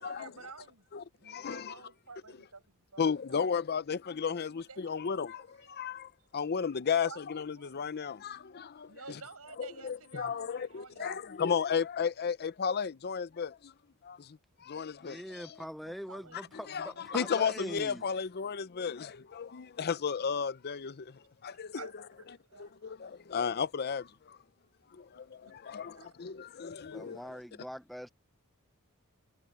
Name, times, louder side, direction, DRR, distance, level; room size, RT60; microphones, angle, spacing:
voice 1, 0.0-3.4 4.2-6.1 6.9-7.8 8.9-11.2 15.9-17.1 21.7-23.0 25.1-25.3 25.7-26.1, right 4 dB, 80° right, 6.9 m, -52 dB
voice 2, 0.9-1.7 3.0-9.2 9.6-13.7 14.0-15.5 16.7-21.9 22.6-24.4 24.9-27.2, left 6 dB, 45° left, 0.6 m, -34 dB
voice 3, 15.0-18.1 26.9-28.1, equal, ahead, 0.4 m, -43 dB
head